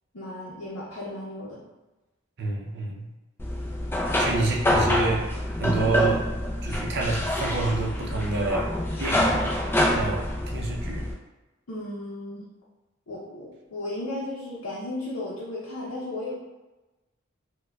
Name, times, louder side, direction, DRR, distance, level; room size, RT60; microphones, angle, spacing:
voice 1, 0.1-1.6 11.7-12.4 13.1-16.3, left 1 dB, 75° left, -7 dB, 0.6 m, -35 dB
voice 2, 2.4-3.1 4.2-5.3 5.6-6.3 6.6-8.7 9.0-9.5 9.9-11.1, right 3 dB, 50° right, -2 dB, 0.5 m, -28 dB
sound 1, 3.4-11.1, left 1 dB, 10° left, 0.3 m, -26 dB
4.4 x 2.2 x 2.2 m, 1.1 s
head